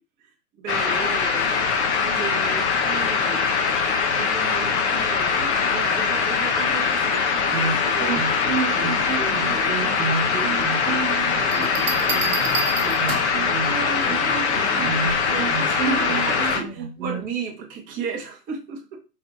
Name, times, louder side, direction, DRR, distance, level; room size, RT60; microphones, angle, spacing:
voice 1, 0.6-3.6 4.1-10.8 11.4-12.7 13.8-19.0, right 5 dB, 15° right, -1 dB, 0.8 m, -35 dB
sound 1, 0.7-16.6, left 5 dB, 45° left, 0.7 m, -22 dB
sound 2, 7.5-17.3, right 5 dB, 75° right, 1.0 m, -30 dB
Bell, 11.5-13.5 15.1-15.4, right 5 dB, 45° right, 1.2 m, -30 dB
4.5 x 2.5 x 3.6 m, 0.31 s
hypercardioid pair, 145°, 49 cm